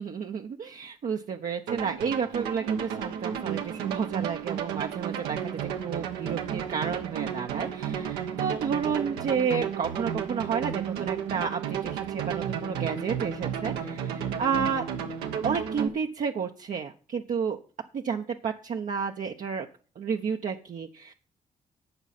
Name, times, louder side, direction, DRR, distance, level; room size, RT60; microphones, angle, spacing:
voice 1, 0.0-14.8 15.4-17.6 17.9-19.7 20.0-21.1, right 6 dB, 55° right, 2 dB, 1.0 m, -31 dB
sound 1, 1.7-15.9, right 8 dB, 80° right, 1.2 m, -32 dB
12.5 x 8.1 x 4.3 m, 0.39 s
hypercardioid pair, 40°, 17 cm